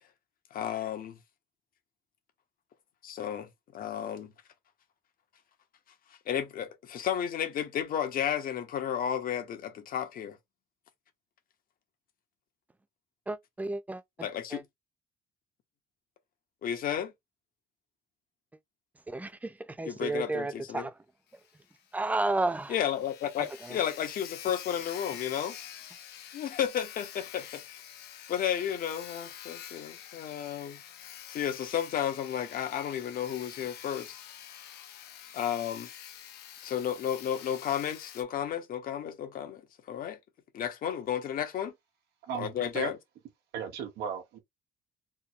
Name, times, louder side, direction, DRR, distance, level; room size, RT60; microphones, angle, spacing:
voice 1, 0.5-1.2 3.0-4.3 6.3-10.4 14.2-14.6 16.6-17.1 19.9-20.9 22.7-25.5 26.3-27.8 28.3-30.8 31.3-34.2 35.3-35.9 36.6-39.6 39.9-40.2 40.5-41.7 42.3-43.0, left 9 dB, 60° left, 1.3 m, -32 dB
voice 2, 13.3-14.6 19.1-20.9 21.9-22.8 23.6-23.8, right 2 dB, 10° right, 0.4 m, -32 dB
Sawing, 21.3-21.4 21.8-21.9 22.2-22.3 22.5-38.2, left 10 dB, 75° left, 1.0 m, -47 dB
voice 3, 42.2-42.9 43.5-44.4, right 7 dB, 75° right, 1.0 m, -36 dB
3.6 x 2.2 x 4.4 m
cardioid pair, 110°, 17 cm